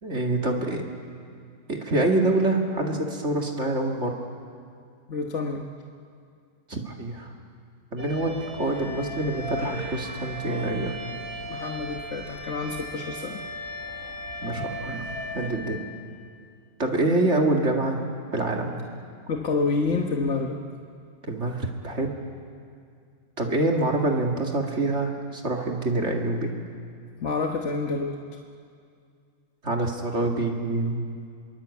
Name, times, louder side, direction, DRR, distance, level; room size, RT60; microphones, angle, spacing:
voice 1, 0.0-0.8 1.7-4.3 6.7-7.3 7.9-10.9 14.4-15.8 16.8-18.0 18.3-18.8 21.3-22.1 23.4-26.5 29.6-31.0, right 2 dB, 50° right, 1 dB, 2.5 m, -26 dB
voice 2, 5.1-5.6 11.5-13.4 19.3-20.6 27.2-28.2, left 4 dB, 50° left, 2 dB, 1.6 m, -28 dB
sound 1, 8.0-15.5, left 1 dB, 75° right, 5.3 m, -36 dB
27.5 x 22.5 x 8.5 m, 2.3 s
omnidirectional pair, 1.6 m